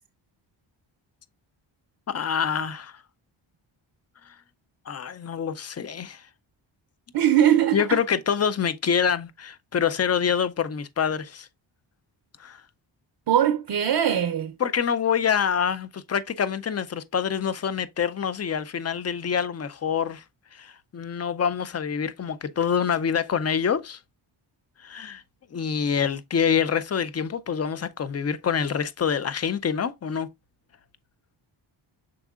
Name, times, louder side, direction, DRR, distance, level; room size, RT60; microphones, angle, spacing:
voice 1, 2.1-3.0 4.9-6.2 7.7-11.5 12.4-12.6 14.6-20.2 20.5-24.0 24.8-25.2 25.5-30.3, left 7 dB, 30° left, 0.5 m, -26 dB
voice 2, 7.1-8.0 13.3-14.5, right 10 dB, 55° right, 0.6 m, -21 dB
6.1 x 3.6 x 2.3 m
cardioid pair, 75°, 49 cm